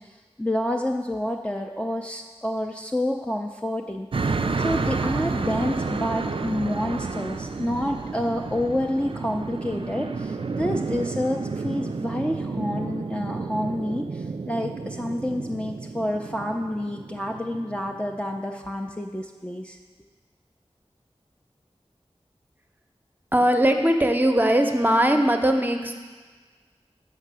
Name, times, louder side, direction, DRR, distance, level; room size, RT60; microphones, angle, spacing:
voice 1, 0.0-19.8, left 1 dB, 10° left, 0 dB, 0.4 m, -29 dB
sound 1, 4.1-18.4, right 4 dB, 55° right, 0.3 m, -31 dB
voice 2, 23.3-26.0, right 1 dB, 15° right, 4 dB, 0.7 m, -20 dB
6.7 x 5.5 x 6.2 m, 1.4 s
wide cardioid pair, 45°, 11 cm